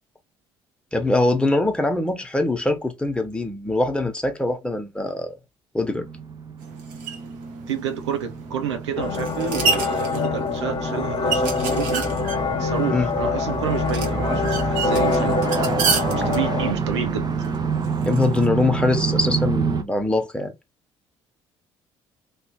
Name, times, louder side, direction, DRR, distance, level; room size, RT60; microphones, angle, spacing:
voice 1, 0.9-5.3 5.7-6.0 12.9-13.1 18.1-20.5, left 2 dB, 5° left, 1.1 m, -22 dB
sound 1, 6.0-19.8, right 5 dB, 30° right, 0.7 m, -28 dB
sound 2, 6.6-18.5, right 5 dB, 70° right, 1.0 m, -30 dB
voice 2, 7.7-12.1 12.6-15.5 16.1-17.3, right 7 dB, 85° right, 0.6 m, -29 dB
sound 3, 9.0-16.7, left 4 dB, 35° left, 1.2 m, -25 dB
3.2 x 2.7 x 2.9 m
hypercardioid pair, 55°, 14 cm